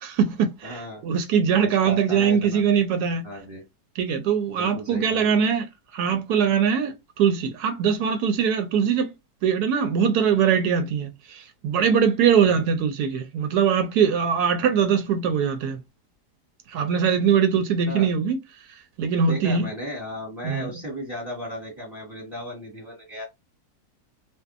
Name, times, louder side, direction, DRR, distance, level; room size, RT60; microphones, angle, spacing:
voice 1, 0.0-3.2 4.0-5.6 5.9-9.1 9.4-15.8 16.7-18.4 19.0-19.7 20.4-20.7, right 7 dB, 80° right, 1.1 m, -22 dB
voice 2, 0.6-1.0 1.6-2.7 3.2-3.6 4.5-5.3 12.6-12.7 17.9-18.1 19.3-23.2, equal, 15° right, 1.1 m, -35 dB
2.6 x 2.4 x 2.3 m
omnidirectional pair, 1.7 m